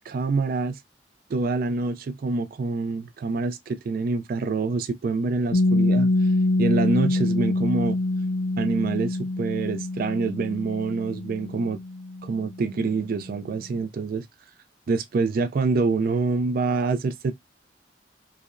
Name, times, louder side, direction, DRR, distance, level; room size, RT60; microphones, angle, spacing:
voice 1, 0.1-0.8 1.3-6.1 6.6-8.0 8.6-11.8 12.2-14.3 14.9-17.3, right 4 dB, 55° right, 0.4 m, -26 dB
Piano, 5.5-12.8, left 2 dB, 65° left, 0.4 m, -25 dB
4.7 x 2.0 x 2.5 m
head